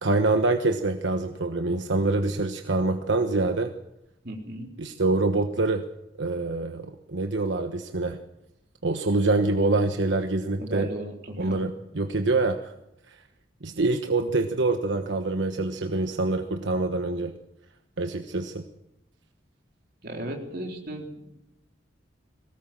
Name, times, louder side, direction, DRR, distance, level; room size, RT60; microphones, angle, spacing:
voice 1, 0.0-3.7 4.8-5.8 6.2-8.2 8.8-10.9 11.4-12.7 13.6-17.3 18.0-18.6, right 2 dB, 90° right, 6 dB, 1.2 m, -25 dB
voice 2, 4.2-4.7 10.6-11.6 20.0-21.3, right 1 dB, 55° right, 1 dB, 4.0 m, -35 dB
21.5 x 17.5 x 7.5 m, 0.85 s
head